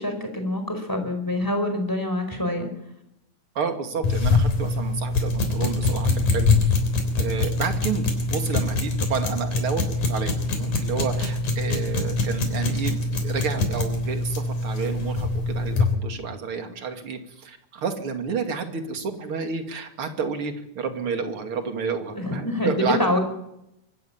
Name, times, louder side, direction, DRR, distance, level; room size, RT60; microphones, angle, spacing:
voice 1, 0.0-2.7 22.1-23.2, left 1 dB, 5° left, 6 dB, 4.7 m, -25 dB
voice 2, 3.5-6.8 7.2-23.2, right 5 dB, 45° right, 5 dB, 3.1 m, -30 dB
sound 1, 4.0-15.9, left 3 dB, 90° left, 5.0 m, -24 dB
24.0 x 14.0 x 9.0 m, 0.82 s
omnidirectional pair, 3.5 m